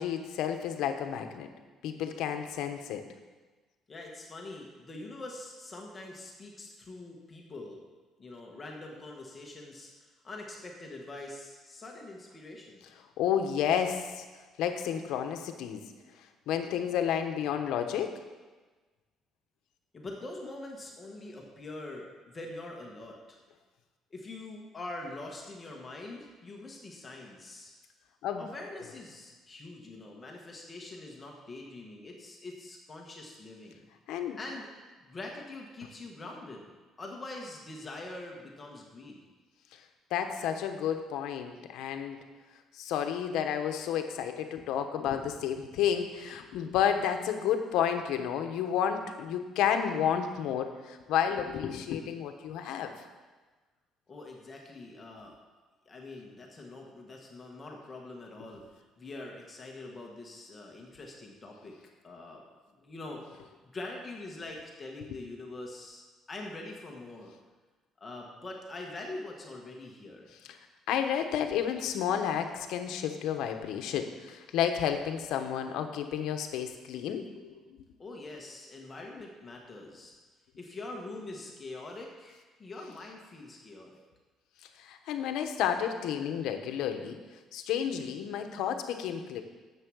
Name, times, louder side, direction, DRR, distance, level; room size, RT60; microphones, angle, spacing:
voice 1, 0.0-1.5 1.8-3.0 13.2-14.2 14.6-15.8 16.5-18.1 28.2-28.4 34.1-34.4 40.1-42.2 42.8-52.9 70.9-77.8 84.8-87.2 87.5-89.4, left 8 dB, 70° left, 6 dB, 1.0 m, -31 dB
voice 2, 3.9-7.8 8.2-12.9 19.9-23.4 24.1-27.7 28.4-33.9 34.4-34.7 35.0-36.7 37.0-39.2 54.1-55.3 55.8-61.7 62.0-62.4 62.8-63.2 63.7-67.3 68.0-70.3 78.0-80.1 80.6-84.0, left 2 dB, 15° left, 0 dB, 1.3 m, -44 dB
10.5 x 7.5 x 6.3 m, 1.3 s
cardioid pair, 180°, 0 cm